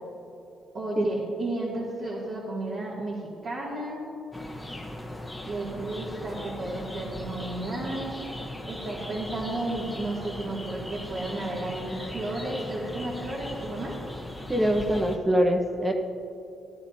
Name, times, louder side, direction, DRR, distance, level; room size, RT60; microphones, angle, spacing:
voice 1, 0.7-3.2 3.4-4.0 5.5-8.2 8.6-13.9, right 2 dB, 55° right, -8 dB, 2.5 m, -33 dB
sound 1, 4.3-15.2, left 1 dB, 5° left, 1.3 m, -38 dB
voice 2, 14.5-15.9, equal, 15° right, 2 dB, 1.3 m, -23 dB
17.0 x 11.0 x 2.9 m, 2.8 s
cardioid pair, 90°, 0 cm